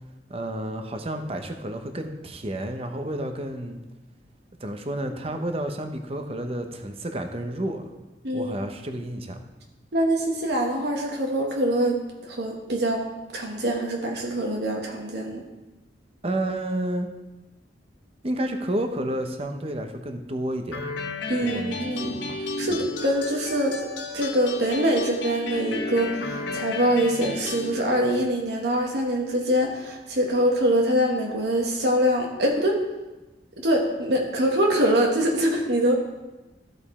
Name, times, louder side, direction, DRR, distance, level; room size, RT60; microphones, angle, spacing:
voice 1, 0.3-3.8 4.6-7.9 8.3-9.4 16.2-17.1 18.2-20.8 21.4-22.4 22.7-22.8, right 1 dB, 35° right, 6 dB, 0.8 m, -30 dB
voice 2, 8.2-8.5 9.9-13.0 13.3-15.4 21.3-22.1 22.6-32.8 33.6-35.9, equal, 65° right, 0 dB, 1.2 m, -24 dB
sound 1, 20.7-27.7, left 2 dB, 85° left, 1.0 m, -33 dB
13.5 x 5.2 x 4.2 m, 1.1 s
head